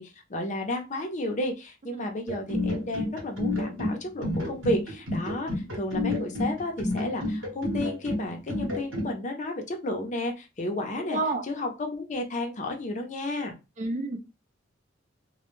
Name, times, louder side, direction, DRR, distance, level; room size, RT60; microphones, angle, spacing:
voice 1, 0.0-11.2 11.5-13.5, left 1 dB, 40° left, 4 dB, 0.5 m, -32 dB
sound 1, 2.3-9.1, left 1 dB, 90° right, 0.9 m, -30 dB
voice 2, 11.1-11.4 13.8-14.3, right 3 dB, 40° right, 6 dB, 0.4 m, -29 dB
2.1 x 2.1 x 3.0 m, 0.27 s
head